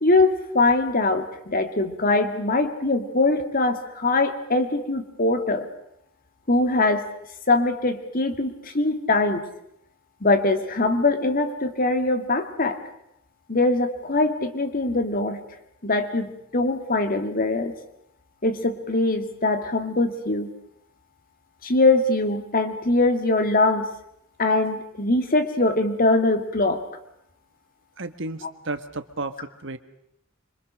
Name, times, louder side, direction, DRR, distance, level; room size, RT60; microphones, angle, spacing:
voice 1, 0.0-5.7 6.5-7.1 7.5-9.4 10.2-12.8 13.5-15.4 15.8-17.7 18.4-20.5 21.6-23.9 24.4-26.8, left 2 dB, 45° left, 7 dB, 2.3 m, -22 dB
voice 2, 28.0-29.8, right 2 dB, 65° right, 10 dB, 1.5 m, -33 dB
26.0 x 24.5 x 6.5 m, 0.77 s
head